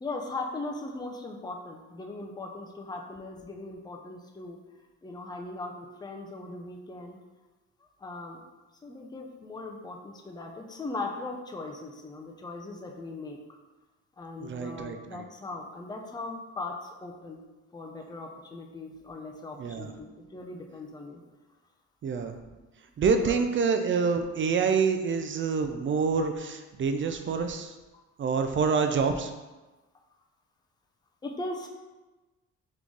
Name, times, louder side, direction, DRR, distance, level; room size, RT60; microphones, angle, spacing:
voice 1, 0.0-4.6 5.0-7.2 8.0-8.4 8.8-13.4 14.2-17.4 17.7-21.2 23.2-23.4 27.9-28.0 31.2-31.7, left 2 dB, 15° left, 2 dB, 0.5 m, -39 dB
voice 2, 14.4-15.2 19.6-19.9 22.0-22.4 23.0-27.7 28.2-29.3, right 5 dB, 40° right, 7 dB, 0.4 m, -27 dB
3.8 x 3.2 x 3.6 m, 1.2 s
cardioid pair, 90°, 30 cm